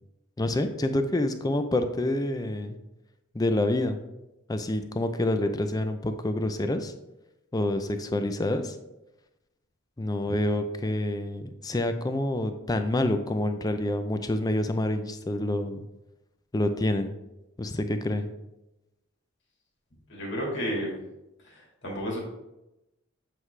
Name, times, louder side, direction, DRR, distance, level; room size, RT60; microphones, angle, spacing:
voice 1, 0.4-2.8 3.3-4.0 4.5-6.9 7.5-8.8 10.0-15.9 16.5-17.1 17.6-18.3, left 1 dB, 20° left, 8 dB, 0.4 m, -27 dB
voice 2, 20.1-20.9 21.5-22.2, equal, 55° left, -2 dB, 1.9 m, -32 dB
7.7 x 4.7 x 3.2 m, 0.95 s
head